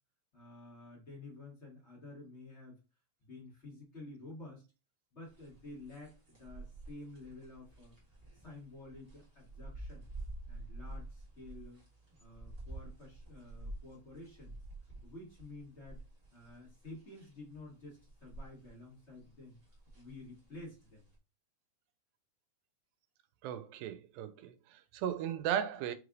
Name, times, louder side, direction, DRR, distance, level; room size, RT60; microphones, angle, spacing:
voice 1, 0.3-2.8 3.2-4.6 5.1-7.9 8.3-10.1 10.5-11.8 12.2-14.6 15.0-16.0 16.3-19.6 19.9-21.0, left 2 dB, 30° left, 1.4 m, -51 dB
sound 1, 5.3-18.7 19.0-21.1, right 2 dB, 40° right, 0.8 m, -49 dB
voice 2, 23.4-26.0, right 10 dB, 85° right, 2.3 m, -36 dB
5.3 x 3.3 x 2.5 m
omnidirectional pair, 4.0 m